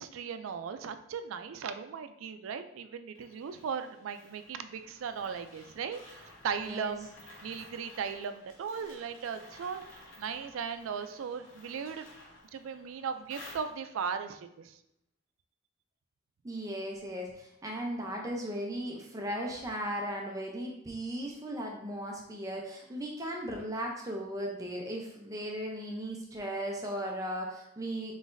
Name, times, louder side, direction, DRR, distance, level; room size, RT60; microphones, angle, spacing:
voice 1, 0.0-7.1 7.4-12.1 12.5-14.8, right 6 dB, 90° right, 10 dB, 0.4 m, -37 dB
sound 1, 3.2-14.1, left 1 dB, 75° left, 1.0 m, -54 dB
voice 2, 6.6-7.0 16.4-28.1, equal, 15° right, 0 dB, 0.5 m, -37 dB
3.9 x 3.9 x 2.5 m, 0.78 s
head